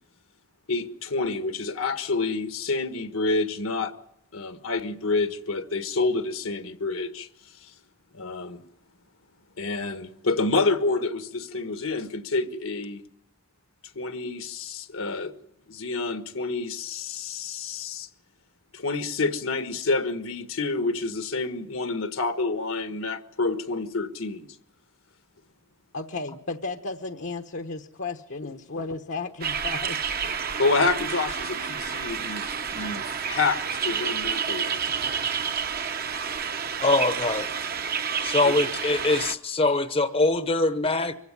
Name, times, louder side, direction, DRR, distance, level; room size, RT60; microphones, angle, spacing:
voice 1, 0.7-3.9 4.3-7.3 8.1-8.6 9.6-13.0 13.9-15.3 15.7-18.1 18.7-24.5 30.6-32.4 32.7-34.9 38.4-38.5, left 3 dB, 75° left, 1.5 m, -28 dB
voice 2, 25.9-30.2, left 3 dB, 60° left, 1.0 m, -34 dB
sound 1, 29.4-39.3, right 7 dB, 45° right, 1.0 m, -29 dB
voice 3, 36.8-37.5 38.2-41.1, left 2 dB, 25° left, 0.9 m, -23 dB
24.5 x 16.0 x 9.8 m
head